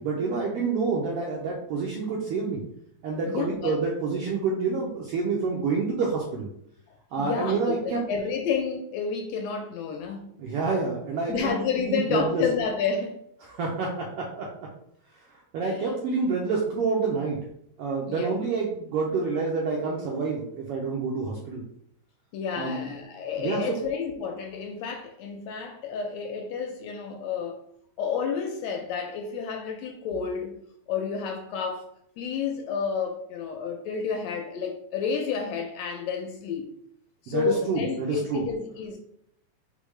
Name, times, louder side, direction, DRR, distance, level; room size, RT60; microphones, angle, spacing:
voice 1, 0.0-2.6 3.0-6.5 7.1-8.0 10.4-11.5 11.8-12.4 13.5-14.7 15.3-17.4 17.8-21.6 22.6-22.9 23.4-23.6 37.3-38.4, right 4 dB, 85° right, 1.3 m, -28 dB
voice 2, 3.3-3.8 7.2-10.3 11.3-13.2 15.6-15.8 18.1-18.3 22.3-27.6 28.0-30.6 30.9-31.9 32.2-36.7 37.2-39.0, left 6 dB, 80° left, 1.5 m, -30 dB
4.3 x 3.6 x 3.1 m
omnidirectional pair, 3.4 m